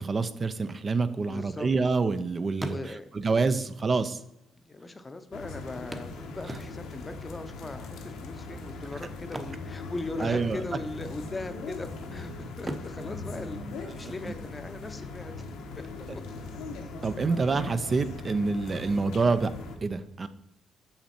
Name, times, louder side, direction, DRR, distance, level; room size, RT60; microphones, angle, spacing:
voice 1, 0.0-4.2 10.2-10.6 14.2-14.3 17.0-19.5 19.8-20.3, right 4 dB, 35° right, 11 dB, 0.4 m, -27 dB
sound 1, 1.2-2.2 2.5-3.3 4.2-4.3 4.6-4.7 5.9-7.1 9.2-10.5 10.7-11.0 11.5-12.1 12.6-14.3 16.3-16.4 16.8-16.9, right 1 dB, 15° right, 0.8 m, -41 dB
voice 2, 1.3-1.7 2.7-3.3 4.6-15.3 15.8-16.2, left 2 dB, 25° left, 10 dB, 0.6 m, -39 dB
sound 2, 5.3-19.8, left 3 dB, 85° left, 1.0 m, -40 dB
6.1 x 5.7 x 4.3 m, 0.84 s
cardioid pair, 90°, 0 cm